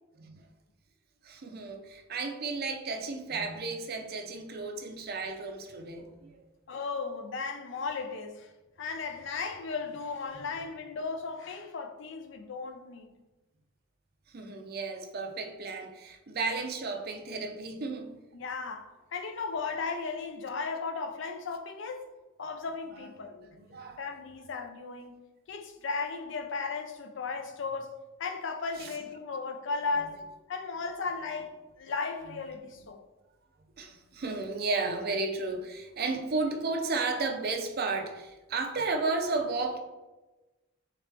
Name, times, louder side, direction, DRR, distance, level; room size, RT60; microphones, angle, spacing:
voice 1, 1.2-6.4 14.3-18.1 22.9-24.0 28.8-28.9 33.8-39.8, right 3 dB, 50° right, 0.5 m, -33 dB
voice 2, 6.7-8.5 8.8-13.1 18.3-22.1 22.4-23.3 24.0-25.2 25.5-31.5 31.8-33.0, left 4 dB, 65° left, 0.5 m, -36 dB
3.7 x 3.4 x 3.3 m
head